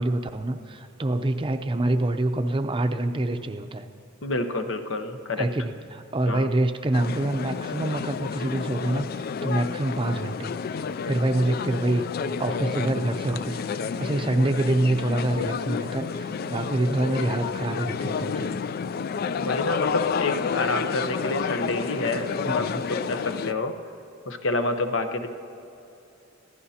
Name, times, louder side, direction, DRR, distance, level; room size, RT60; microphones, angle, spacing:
voice 1, 0.0-3.9 5.4-18.5 22.5-22.9, right 1 dB, 25° right, 7 dB, 0.6 m, -26 dB
voice 2, 4.2-5.5 6.3-6.5 19.3-23.7 24.3-25.3, left 2 dB, 65° left, 7 dB, 1.0 m, -28 dB
sound 1, 6.9-23.5, left 6 dB, 45° left, 0.3 m, -30 dB
22.0 x 15.5 x 2.9 m, 2.8 s
head